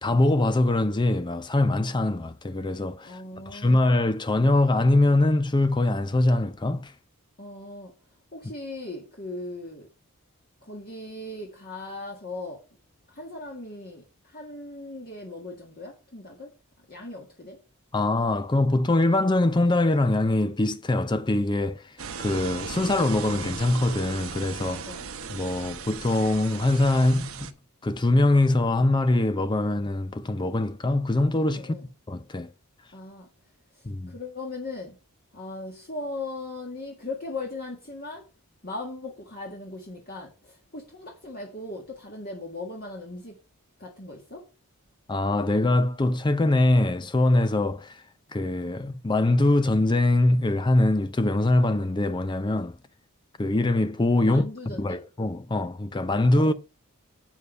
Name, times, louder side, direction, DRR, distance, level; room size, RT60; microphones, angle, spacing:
voice 1, 0.0-6.9 17.9-24.8 25.3-27.5 27.8-31.7 32.1-32.5 33.8-34.2 45.1-48.0 48.3-52.8 53.4-56.5, left 2 dB, 20° left, 0.5 m, -23 dB
voice 2, 3.1-3.8 7.4-7.9 8.3-9.9 10.6-12.6 13.1-16.5 16.9-17.6 24.6-25.0 31.6-31.8 32.9-33.3 33.8-35.0 35.3-38.2 38.6-43.3 43.8-44.5 54.2-55.0 56.3-56.5, left 2 dB, 45° left, 1.9 m, -38 dB
sound 1, 22.0-27.5, right 6 dB, 70° right, 1.0 m, -37 dB
8.2 x 7.2 x 5.4 m
head